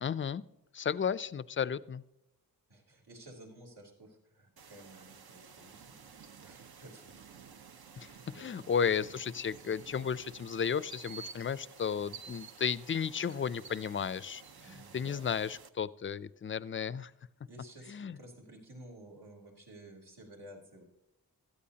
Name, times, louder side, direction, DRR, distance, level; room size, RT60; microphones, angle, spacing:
voice 1, 0.0-0.4 0.7-2.0 8.0-14.4 14.7-17.1 17.9-18.2, left 7 dB, 35° left, 17 dB, 0.4 m, -34 dB
voice 2, 2.7-7.2 8.3-8.6 14.6-15.3 17.4-20.8, right 1 dB, 85° right, -1 dB, 3.6 m, -53 dB
sound 1, 4.6-15.7, right 6 dB, 70° right, 0.8 m, -52 dB
17.0 x 13.0 x 2.8 m, 0.90 s
wide cardioid pair, 105°, 39 cm